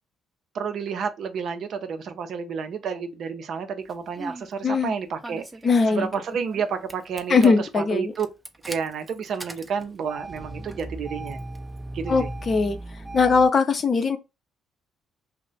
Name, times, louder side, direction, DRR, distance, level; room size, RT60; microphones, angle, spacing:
voice 1, 0.5-5.5 5.9-8.3 8.7-11.4 11.9-12.3, right 6 dB, 60° right, 0.5 m, -30 dB
Engine starting, 3.9-4.5 5.2-6.6 6.9-7.5 8.1-13.5, right 2 dB, 15° right, 0.5 m, -37 dB
voice 2, 4.6-4.9 5.6-6.1 7.3-8.1 12.1-12.8 13.1-14.2, left 4 dB, 45° left, 0.6 m, -20 dB
2.4 x 2.1 x 3.8 m
supercardioid pair, 60°, 0 cm